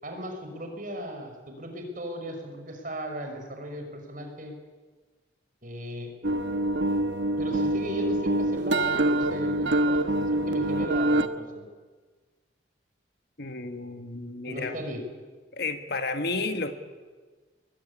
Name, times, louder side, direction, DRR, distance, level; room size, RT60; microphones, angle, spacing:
voice 1, 0.0-4.5 5.6-6.1 7.4-11.6 14.5-15.0, equal, 45° right, 4 dB, 5.8 m, -36 dB
sound 1, 6.2-11.3, right 1 dB, 70° right, 1.2 m, -25 dB
voice 2, 13.4-14.8 15.5-16.7, left 3 dB, 55° left, 8 dB, 1.8 m, -32 dB
23.0 x 22.0 x 10.0 m, 1.4 s
head